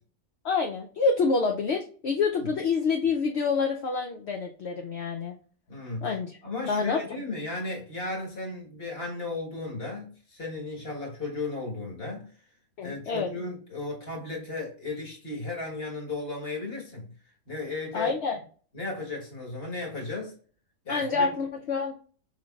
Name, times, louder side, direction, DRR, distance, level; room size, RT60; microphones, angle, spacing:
voice 1, 0.4-5.3 6.0-6.3 6.7-7.0 12.8-13.3 17.9-18.4 20.9-21.9, left 4 dB, 60° left, 0.7 m, -27 dB
voice 2, 5.7-6.1 6.4-12.3 12.8-17.1 17.5-18.2 18.7-20.3 20.8-21.4, left 3 dB, 45° left, 1.6 m, -35 dB
4.8 x 3.7 x 2.3 m
omnidirectional pair, 1.5 m